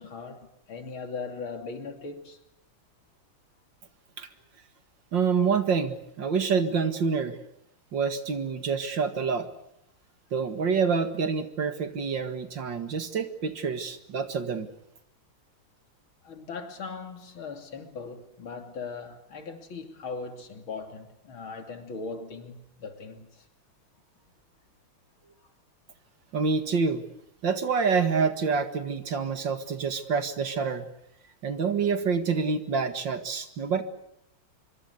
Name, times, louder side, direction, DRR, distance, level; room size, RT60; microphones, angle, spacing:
voice 1, 0.0-2.4 16.2-23.5 25.2-25.4, left 4 dB, 80° left, 3.7 m, -39 dB
voice 2, 5.1-7.4 7.9-9.5 10.3-14.7 26.3-27.0 27.4-30.9 31.4-33.8, right 5 dB, 65° right, 2.6 m, -27 dB
25.0 x 24.0 x 8.3 m
omnidirectional pair, 2.2 m